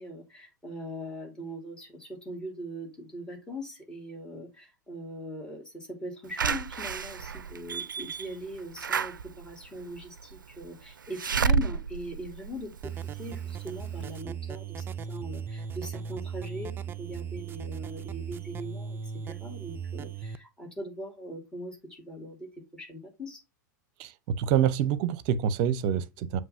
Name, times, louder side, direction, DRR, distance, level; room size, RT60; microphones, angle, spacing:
voice 1, 0.0-16.7 17.0-23.4, equal, 10° left, 2.9 m, -41 dB
Slam / Alarm, 6.4-13.2 13.7-13.8 14.0-14.1, right 6 dB, 85° right, 0.4 m, -31 dB
sound 1, 12.8-20.4, right 7 dB, 20° right, 0.5 m, -37 dB
voice 2, 24.0-26.4, right 9 dB, 45° right, 0.8 m, -26 dB
7.5 x 3.2 x 5.4 m
figure-of-eight pair, 95°, 10 cm